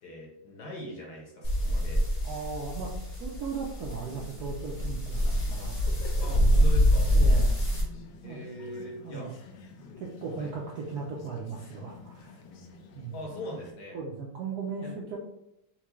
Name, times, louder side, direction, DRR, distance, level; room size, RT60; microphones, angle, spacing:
voice 1, 0.0-2.0 6.2-7.1 8.2-9.3 10.4-10.5 13.1-14.0 14.8-14.9, equal, 55° left, -2 dB, 1.4 m, -40 dB
sound 1, 1.4-7.8, equal, 35° left, 1.1 m, -25 dB
voice 2, 2.2-2.9 3.2-5.8 7.1-7.6 8.2-8.4 9.0-9.3 10.0-12.4 12.9-13.2 13.9-15.2, right 5 dB, 75° right, -2 dB, 0.9 m, -37 dB
sound 2, 3.9-13.7, left 4 dB, 75° left, 1.1 m, -49 dB
5.8 x 2.2 x 3.0 m, 0.81 s
omnidirectional pair, 2.3 m